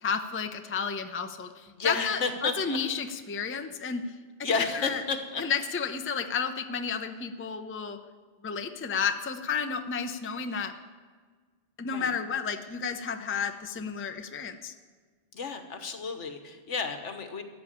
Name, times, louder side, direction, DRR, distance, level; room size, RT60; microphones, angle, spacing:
voice 1, 0.0-4.0 4.8-5.0 5.4-8.0 8.4-10.7 11.8-14.7, left 6 dB, 15° left, 8 dB, 0.5 m, -32 dB
voice 2, 1.7-2.8 4.4-5.4 11.9-12.1 15.3-17.4, left 4 dB, 75° left, 7 dB, 1.5 m, -31 dB
14.0 x 6.7 x 10.0 m, 1.5 s
omnidirectional pair, 1.2 m